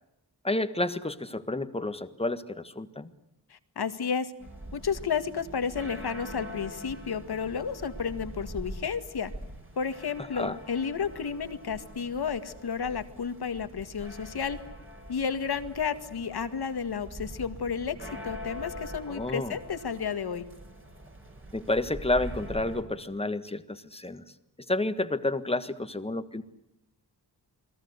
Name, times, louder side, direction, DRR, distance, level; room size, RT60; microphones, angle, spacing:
voice 1, 0.4-3.1 10.3-10.6 19.1-19.6 21.5-24.2 24.7-26.4, left 2 dB, 15° left, 11 dB, 1.5 m, -30 dB
voice 2, 3.5-4.3 4.7-9.3 9.8-14.6 15.1-20.4, left 6 dB, 70° left, 10 dB, 2.0 m, -32 dB
sound 1, 4.4-22.8, equal, 30° right, 6.2 m, -43 dB
29.0 x 21.5 x 8.1 m, 0.84 s
wide cardioid pair, 125°, 39 cm